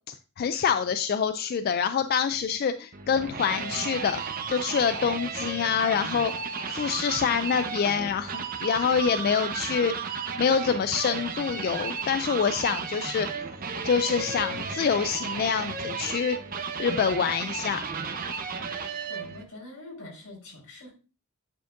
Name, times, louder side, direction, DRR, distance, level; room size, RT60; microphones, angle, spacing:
voice 1, 0.4-4.2 4.5-6.3 6.7-9.9 10.4-13.3 13.8-16.4 16.8-17.8, left 6 dB, 45° left, 11 dB, 0.3 m, -26 dB
sound 1, 2.9-19.4, right 5 dB, 40° right, 0.7 m, -34 dB
voice 2, 19.1-20.9, left 2 dB, 85° left, -2 dB, 4.0 m, -44 dB
9.0 x 5.2 x 2.5 m, 0.34 s
head